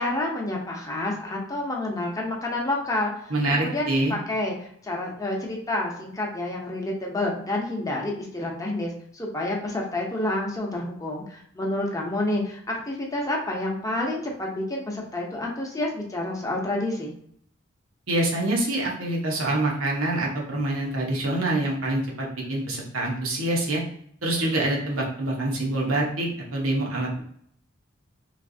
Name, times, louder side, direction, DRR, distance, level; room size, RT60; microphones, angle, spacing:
voice 1, 0.0-17.1, left 1 dB, 15° left, -1 dB, 0.7 m, -29 dB
voice 2, 3.3-4.1 18.1-23.8 24.2-27.2, right 1 dB, 85° right, -2 dB, 1.0 m, -26 dB
3.2 x 2.9 x 2.7 m, 0.64 s
head